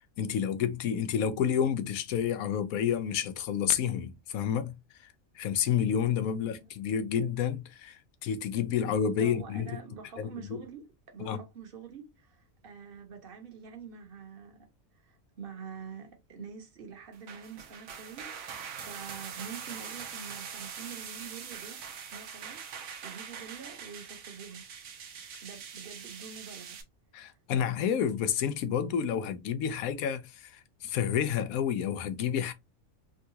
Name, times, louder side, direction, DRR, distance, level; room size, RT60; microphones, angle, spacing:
voice 1, 0.2-4.7 5.0-9.7 10.2-10.6 11.2-11.4 27.1-32.5, left 8 dB, 90° left, 1.0 m, -30 dB
voice 2, 6.3-6.7 9.2-14.7 14.9-21.8 22.1-22.6 23.0-24.6 25.4-26.8 27.1-27.4, right 6 dB, 45° right, 0.9 m, -46 dB
sound 1, 17.1-26.8, right 7 dB, 80° right, 1.1 m, -43 dB
3.6 x 2.2 x 2.7 m
omnidirectional pair, 1.4 m